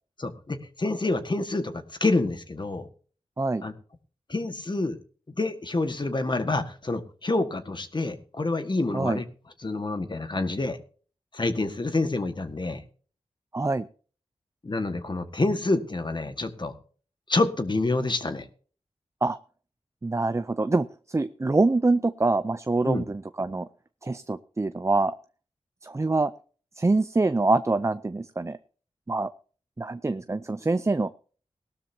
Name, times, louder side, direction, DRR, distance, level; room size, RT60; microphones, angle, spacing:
voice 1, 0.2-2.9 3.6-3.7 4.3-5.0 5.4-9.2 9.6-10.8 11.3-12.8 14.6-16.7 17.3-18.4 22.8-23.0, left 2 dB, 40° left, 8 dB, 1.7 m, -27 dB
voice 2, 13.5-13.9 19.2-19.4 20.0-23.7 24.0-25.1 25.8-26.3 26.8-28.6 29.1-29.3 29.8-31.1, right 3 dB, 25° right, 13 dB, 0.5 m, -25 dB
18.0 x 12.5 x 2.8 m, 0.41 s
cardioid pair, 55°, 12 cm